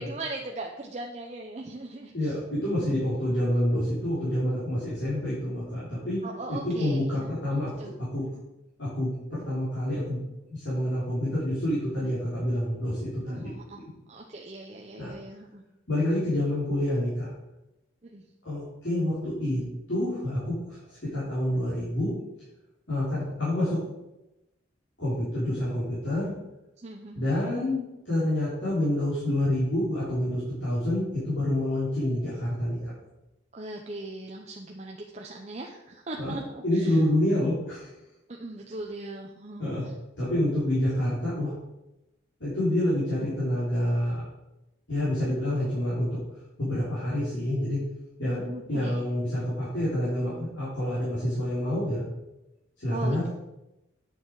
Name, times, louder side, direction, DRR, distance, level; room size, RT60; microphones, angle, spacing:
voice 1, 0.0-2.3 6.2-7.9 13.3-13.8 14.1-15.6 18.1-18.2 26.8-27.3 33.5-37.0 38.3-39.9 48.4-49.0 52.9-53.3, right 2 dB, 35° right, 1 dB, 0.7 m, -39 dB
voice 2, 2.1-6.2 6.5-7.7 8.1-8.2 8.8-10.2 10.5-13.5 15.0-15.1 15.9-17.3 18.5-19.6 19.9-22.1 22.9-23.8 25.0-26.3 27.1-32.9 36.2-36.3 36.6-37.9 39.6-39.8 40.2-41.5 42.4-44.2 44.9-46.2 46.6-47.8 48.2-48.4 48.7-52.1 52.8-53.3, left 1 dB, 75° left, -9 dB, 3.7 m, -27 dB
8.9 x 6.9 x 4.7 m, 0.94 s
head